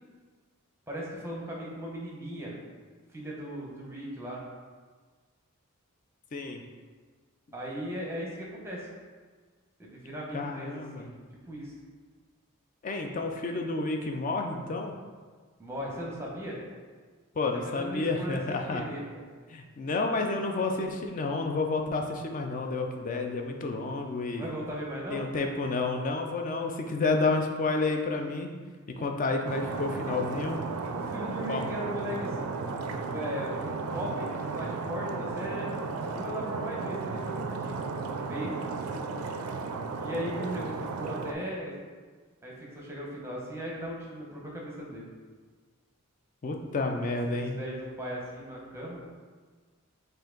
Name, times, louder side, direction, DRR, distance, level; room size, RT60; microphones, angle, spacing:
voice 1, 0.9-2.6 3.1-4.4 7.5-8.9 9.8-11.1 11.5-11.7 15.6-16.6 17.7-19.2 24.3-25.2 26.9-27.0 29.0-29.1 30.9-32.5 33.0-33.6 33.9-35.7 36.1-38.7 40.0-41.7 42.4-45.1 47.3-49.0, equal, 10° right, -4 dB, 0.8 m, -38 dB
voice 2, 6.3-6.6 10.3-11.1 12.8-15.0 17.4-18.8 19.5-24.5 25.1-28.5 29.0-30.6 31.5-31.6 46.4-47.6, left 3 dB, 35° left, 3 dB, 0.4 m, -30 dB
Stream, 29.5-41.3, right 4 dB, 75° right, 0.4 m, -34 dB
4.5 x 2.6 x 3.8 m, 1.5 s
head